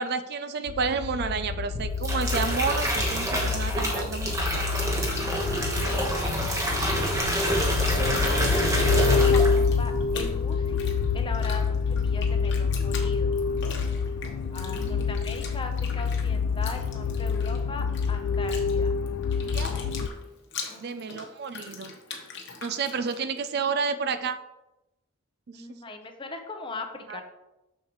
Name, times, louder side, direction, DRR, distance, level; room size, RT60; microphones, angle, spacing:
voice 1, 0.0-5.6 6.2-6.7 8.2-8.4 14.7-15.0 19.4-19.7 20.8-21.9 22.6-24.4 25.5-25.6 27.1-27.2, right 5 dB, 50° right, 11 dB, 0.4 m, -31 dB
sound 1, 0.7-20.1, left 5 dB, 75° left, 0.4 m, -27 dB
sound 2, 1.7-9.8 10.1-10.4, equal, 15° right, 1.2 m, -27 dB
Bathtub (filling or washing), 4.2-7.2 7.5-23.5, left 5 dB, 55° left, 1.1 m, -42 dB
voice 2, 7.9-13.4 14.5-18.9 20.7-21.2 25.5-27.2, left 2 dB, 25° left, 5 dB, 0.7 m, -39 dB
6.9 x 6.4 x 3.1 m, 0.97 s
head